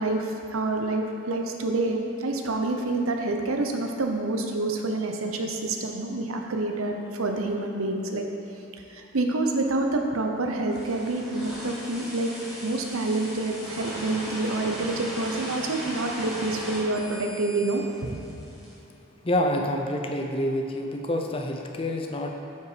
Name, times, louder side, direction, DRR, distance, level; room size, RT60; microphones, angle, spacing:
voice 1, 0.0-8.2 8.9-12.3 12.6-18.2, right 2 dB, 85° right, 3 dB, 0.8 m, -27 dB
sound 1, 10.7-18.7, equal, ahead, 1.8 m, -38 dB
voice 2, 19.2-22.3, left 1 dB, 25° left, 2 dB, 0.6 m, -27 dB
8.0 x 5.7 x 5.0 m, 2.9 s
head